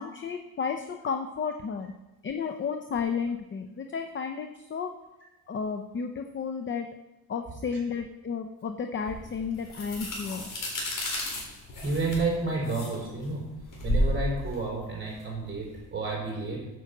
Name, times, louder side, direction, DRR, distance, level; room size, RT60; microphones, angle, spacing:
voice 1, 0.0-1.9 2.2-4.9 5.5-6.9 7.3-10.5, left 6 dB, 35° left, 6 dB, 0.6 m, -32 dB
sound 1, 9.1-15.8, left 1 dB, 60° left, 3.9 m, -32 dB
voice 2, 11.8-13.5 13.8-16.7, right 3 dB, 35° right, -3 dB, 4.4 m, -31 dB
9.1 x 6.2 x 7.1 m, 1.0 s
cardioid pair, 140°, 36 cm